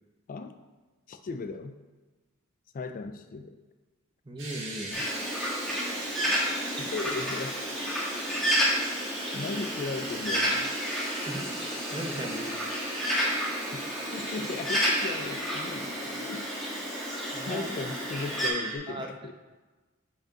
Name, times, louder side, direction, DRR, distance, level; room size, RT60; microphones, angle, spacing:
voice 1, 0.3-0.6 1.1-1.8 2.7-3.6 6.2-6.3 6.8-7.6 9.3-10.7 13.7-16.5 17.5-19.3, left 4 dB, 40° left, 9 dB, 0.3 m, -37 dB
voice 2, 4.2-5.0 11.3-12.5 17.3-17.7 18.9-19.1, right 1 dB, 25° right, 3 dB, 0.7 m, -37 dB
sound 1, 4.4-18.8, right 2 dB, 65° right, 1.8 m, -39 dB
Bird, 4.9-18.5, equal, ahead, 1.4 m, -31 dB
5.1 x 5.0 x 5.7 m, 1.2 s
head